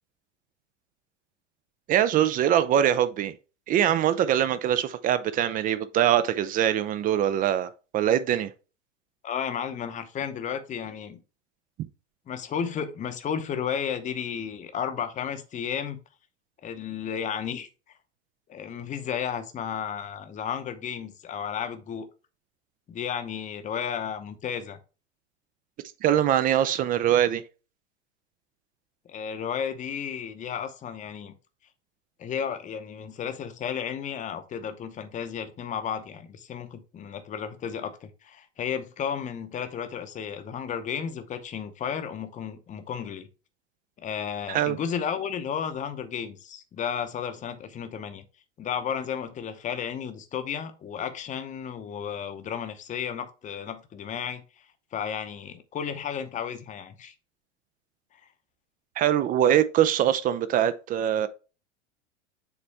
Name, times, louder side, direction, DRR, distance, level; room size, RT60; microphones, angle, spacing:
voice 1, 1.9-3.3 3.7-8.5 26.0-27.4 44.5-44.8 59.0-61.3, right 10 dB, 25° right, 0.4 m, -23 dB
voice 2, 9.2-11.2 12.3-16.0 16.6-17.7 18.5-22.1 22.9-24.8 29.1-31.3 32.2-43.3 44.0-48.2 48.6-54.4 54.9-57.1, left 8 dB, 20° left, 0.8 m, -33 dB
7.2 x 4.1 x 3.3 m
figure-of-eight pair, 90°, 36 cm